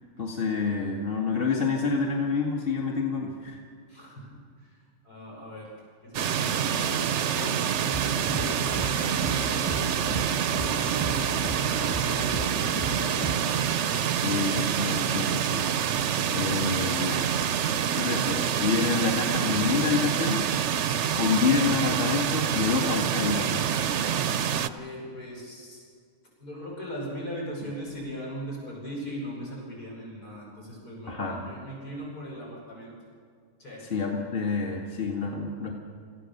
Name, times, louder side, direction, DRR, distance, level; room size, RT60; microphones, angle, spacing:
voice 1, 0.2-3.6 14.2-15.6 16.3-17.3 17.9-20.5 21.1-23.8 31.1-31.5 33.8-35.7, left 4 dB, 35° left, -1 dB, 2.2 m, -28 dB
voice 2, 3.9-4.3 4.6-4.7 5.0-5.7 6.0-9.9 10.5-13.7 24.5-25.8 26.4-32.9 33.6-33.9, equal, 80° left, -3 dB, 6.4 m, -39 dB
sound 1, 6.1-24.7, right 8 dB, 60° right, 0.9 m, -27 dB
sound 2, 7.9-13.4, right 1 dB, 20° left, 1.9 m, -35 dB
27.5 x 15.5 x 6.7 m, 2.1 s
omnidirectional pair, 1.6 m